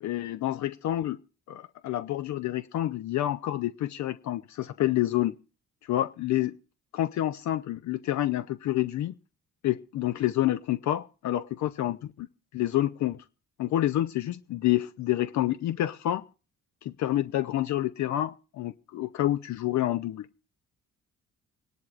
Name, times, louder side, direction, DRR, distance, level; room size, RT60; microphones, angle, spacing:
voice 1, 0.0-1.2 1.5-5.3 5.8-6.5 6.9-9.2 9.6-12.3 12.5-13.2 13.6-16.2 16.8-20.3, left 14 dB, 70° left, 0.5 m, -28 dB
25.5 x 10.5 x 2.4 m
cardioid pair, 90°, 30 cm